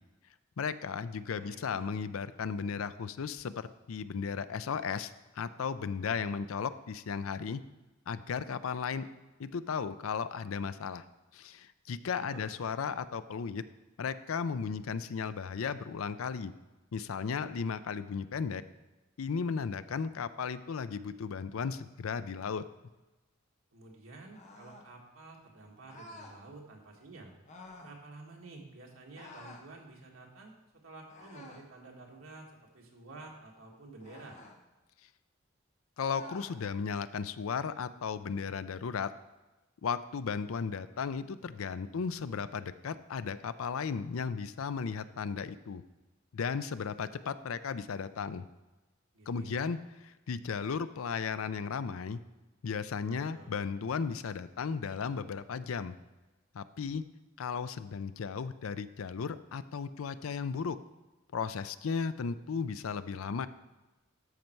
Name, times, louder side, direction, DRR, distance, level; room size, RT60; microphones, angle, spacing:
voice 1, 0.6-7.6 8.1-9.0 9.4-11.0 11.3-13.6 14.0-16.5 16.9-18.6 19.2-22.6 36.0-39.1 39.8-45.8 46.3-48.5 49.3-49.8 50.3-52.2 52.6-55.9 56.5-57.0 57.4-60.8 61.3-63.5, left 6 dB, 90° left, 14 dB, 0.5 m, -35 dB
voice 2, 1.2-1.9 12.2-12.5 23.7-27.3 27.8-30.5 30.8-34.4 49.1-49.7 53.0-53.5, right 2 dB, 90° right, 0 dB, 1.8 m, -51 dB
sound 1, 24.3-24.9 25.9-26.4 27.4-28.0 29.1-29.7 31.1-31.7 34.0-34.6 36.0-36.6, left 2 dB, 35° left, 1.1 m, -50 dB
13.0 x 5.4 x 4.5 m, 1.1 s
head